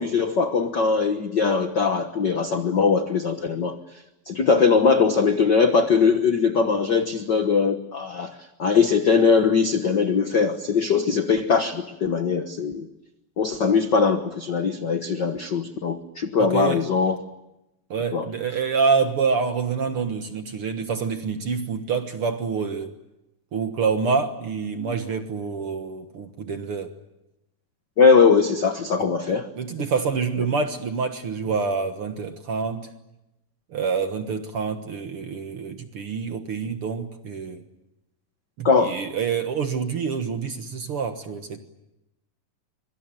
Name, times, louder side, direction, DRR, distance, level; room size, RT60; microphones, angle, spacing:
voice 1, 0.0-3.8 4.3-12.9 13.4-17.2 18.1-18.3 28.0-29.5 38.6-39.0, left 5 dB, 75° left, 1.0 m, -21 dB
voice 2, 16.4-16.9 17.9-22.9 23.5-26.9 29.6-32.9 33.7-37.6 38.6-41.6, right 5 dB, 55° right, 1.8 m, -27 dB
25.0 x 24.0 x 9.1 m
omnidirectional pair, 4.0 m